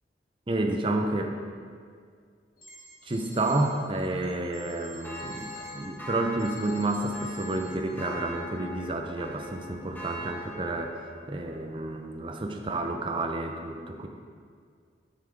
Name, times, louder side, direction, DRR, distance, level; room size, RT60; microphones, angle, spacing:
voice 1, 0.5-1.3 3.0-14.1, right 2 dB, 30° right, 4 dB, 0.6 m, -30 dB
sound 1, 2.6-5.7 6.4-7.7, left 1 dB, 50° left, 1.9 m, -48 dB
sound 2, 5.0-11.7, equal, 10° left, 1.1 m, -42 dB
8.3 x 5.8 x 5.1 m, 2.1 s
head